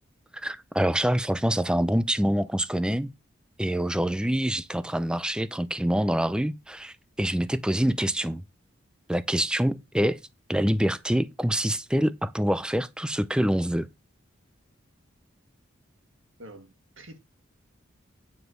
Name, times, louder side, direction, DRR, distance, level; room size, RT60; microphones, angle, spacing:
voice 1, 0.4-3.1 3.6-8.4 9.1-10.2 10.5-13.9, equal, 5° right, 0.4 m, -26 dB
voice 2, 16.4-17.2, right 1 dB, 70° right, 2.1 m, -47 dB
9.6 x 4.9 x 6.4 m
head